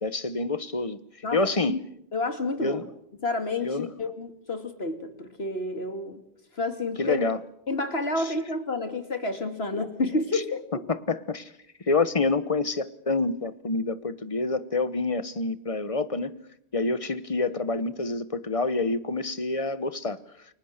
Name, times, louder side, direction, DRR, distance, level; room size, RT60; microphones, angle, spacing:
voice 1, 0.0-1.0 1.3-1.7 2.6-2.9 3.6-3.9 7.0-7.4 8.2-8.3 10.3-10.4 10.9-11.5 11.9-16.4 16.7-20.2, left 3 dB, 30° left, 1.2 m, -27 dB
voice 2, 2.1-2.8 3.2-6.2 6.5-7.2 7.7-10.6, left 2 dB, 60° left, 2.8 m, -29 dB
29.5 x 23.0 x 6.7 m
omnidirectional pair, 1.2 m